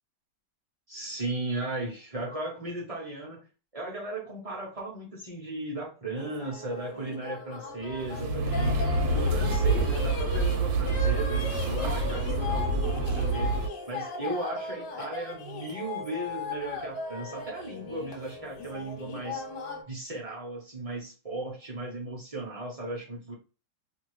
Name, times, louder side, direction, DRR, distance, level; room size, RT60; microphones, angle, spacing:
voice 1, 0.9-3.4 3.7-8.8 9.1-13.5 13.9-19.4 19.9-23.3, right 2 dB, 40° right, -2 dB, 0.5 m, -36 dB
sound 1, 6.2-19.8, left 3 dB, 90° left, 1.4 m, -38 dB
sound 2, 7.9-13.7, right 2 dB, 75° right, 1.1 m, -27 dB
2.6 x 2.6 x 3.0 m, 0.33 s
omnidirectional pair, 1.8 m